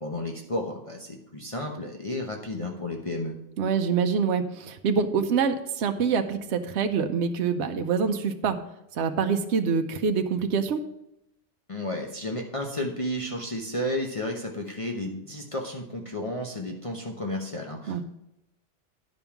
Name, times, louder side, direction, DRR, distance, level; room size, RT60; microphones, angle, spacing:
voice 1, 0.0-3.3 11.7-18.0, left 1 dB, 30° left, 0 dB, 0.9 m, -32 dB
voice 2, 3.6-8.6 8.9-10.8 17.9-18.0, right 6 dB, 70° right, 6 dB, 1.0 m, -25 dB
10.5 x 5.4 x 5.8 m, 0.84 s
omnidirectional pair, 1.2 m